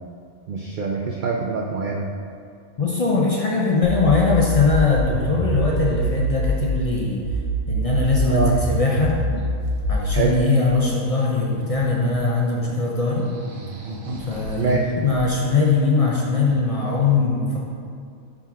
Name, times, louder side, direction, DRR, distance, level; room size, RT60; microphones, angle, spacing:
voice 1, 0.5-2.1 8.3-8.5 10.1-10.4 14.6-14.8, right 4 dB, 85° right, 0 dB, 0.4 m, -24 dB
voice 2, 2.8-7.2 7.7-9.1 9.9-13.3 14.3-17.6, left 3 dB, 65° left, -3 dB, 0.3 m, -21 dB
sound 1, 3.8-6.8 7.2-10.3, equal, 80° left, 1.3 m, -24 dB
sound 2, 9.0-10.3 11.3-12.3 12.7-12.8 13.1-15.5, right 1 dB, 45° right, 0.8 m, -37 dB
5.6 x 4.1 x 4.6 m, 2.4 s
omnidirectional pair, 1.4 m